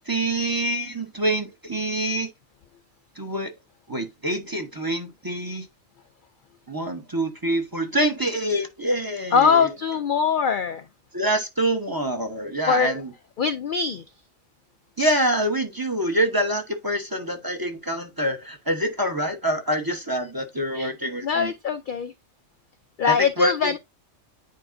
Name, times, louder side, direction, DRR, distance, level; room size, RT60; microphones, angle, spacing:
voice 1, 0.1-2.3 3.2-3.5 3.9-5.7 6.7-9.7 11.1-13.1 15.0-21.5 23.1-23.7, right 1 dB, 20° right, 0.9 m, -26 dB
voice 2, 9.3-10.8 12.7-13.0 13.4-14.0 20.7-20.9 21.2-22.1 23.0-23.8, left 6 dB, 60° left, 0.5 m, -22 dB
9.5 x 4.6 x 2.5 m
omnidirectional pair, 1.3 m